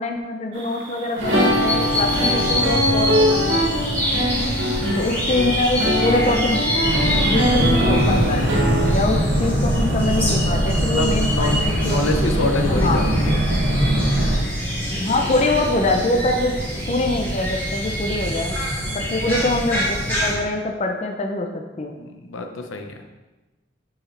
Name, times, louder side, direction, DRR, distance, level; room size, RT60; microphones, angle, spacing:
voice 1, 0.0-3.6 5.0-6.7 7.2-8.6 8.9-12.3 12.7-13.0 14.9-16.5 16.9-18.6 18.9-22.0, left 2 dB, 35° left, 3 dB, 0.4 m, -24 dB
sound 1, 0.6-8.9, equal, 80° right, 1.7 m, -22 dB
sound 2, 1.2-20.3, equal, 10° left, 2.1 m, -25 dB
voice 2, 4.4-4.8 10.9-13.4 18.8-19.1 21.9-22.9, left 2 dB, 85° left, 5 dB, 0.7 m, -27 dB
Boat Water vehicle, 6.8-14.4, right 1 dB, 50° right, 1.6 m, -22 dB
7.2 x 4.7 x 3.3 m, 1.1 s
head